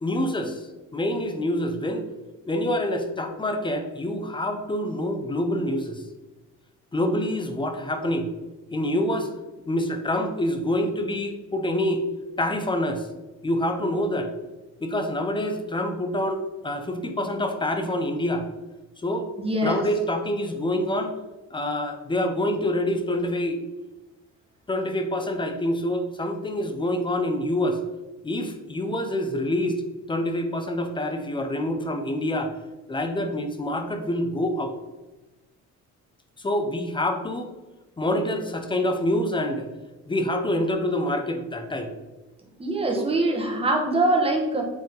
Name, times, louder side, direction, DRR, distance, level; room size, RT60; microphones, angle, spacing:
voice 1, 0.0-2.1 2.4-6.0 6.9-8.3 8.7-9.3 9.6-12.0 12.4-13.1 13.4-14.3 14.8-18.4 19.0-19.3 19.6-21.1 21.5-23.6 24.7-27.8 28.2-32.6 32.9-34.7 36.4-37.5 38.0-39.7 40.1-41.9 42.9-43.0, left 1 dB, 15° left, 6 dB, 0.6 m, -26 dB
voice 2, 19.4-19.8 42.6-44.7, right 2 dB, 20° right, 1 dB, 1.2 m, -23 dB
7.9 x 3.6 x 3.6 m, 1.1 s
cardioid pair, 145°, 31 cm